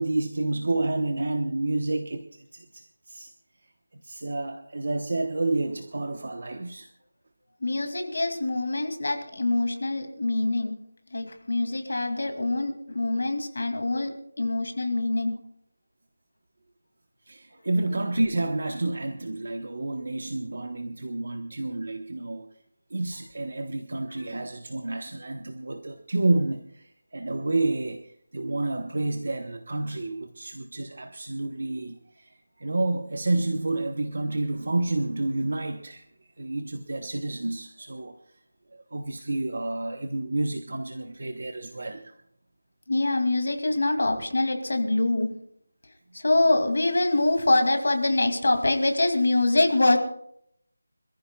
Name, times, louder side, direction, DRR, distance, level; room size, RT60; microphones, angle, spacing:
voice 1, 0.0-3.3 4.0-6.9 17.3-22.5 22.9-36.0 36.4-38.2 38.7-42.1, right 2 dB, 45° right, 6 dB, 1.1 m, -29 dB
voice 2, 7.6-10.8 11.1-15.4 42.9-45.3 46.1-50.0, left 2 dB, 50° left, 5 dB, 2.6 m, -24 dB
26.5 x 14.5 x 2.4 m, 0.70 s
figure-of-eight pair, 180°, 0 cm